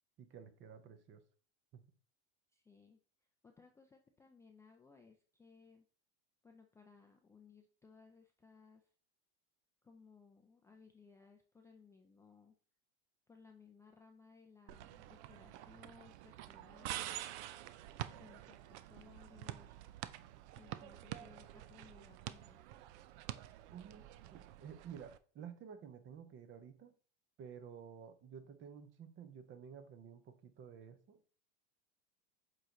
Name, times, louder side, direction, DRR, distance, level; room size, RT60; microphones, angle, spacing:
voice 1, 0.2-1.2 1.7-1.9 23.7-26.9 27.4-31.3, right 7 dB, 35° right, 0.8 m, -52 dB
voice 2, 2.5-3.0 3.4-5.8 6.4-8.9 9.8-12.5 13.3-17.1 18.1-20.1 20.6-22.7, left 5 dB, 10° left, 0.3 m, -62 dB
sound 1, 14.7-25.2, right 13 dB, 70° right, 0.5 m, -48 dB
7.9 x 3.2 x 3.9 m
supercardioid pair, 115°, 35 cm